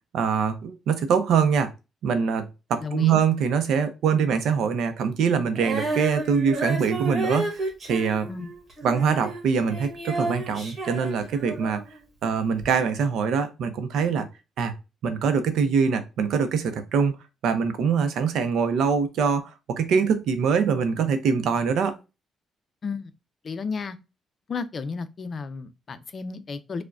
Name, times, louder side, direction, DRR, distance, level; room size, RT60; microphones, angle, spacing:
voice 1, 0.1-1.7 2.0-8.3 8.8-11.8 12.2-14.3 14.6-14.7 15.0-17.1 17.4-21.9, right 6 dB, 80° right, 0.5 m, -23 dB
voice 2, 2.8-3.2 8.3-8.5 22.8-23.1 23.4-24.0 24.5-26.8, left 5 dB, 45° left, 0.4 m, -32 dB
Female singing, 5.5-11.9 12.6-12.7, right 2 dB, 45° right, 1.3 m, -31 dB
4.7 x 2.1 x 2.3 m
cardioid pair, 90°, 0 cm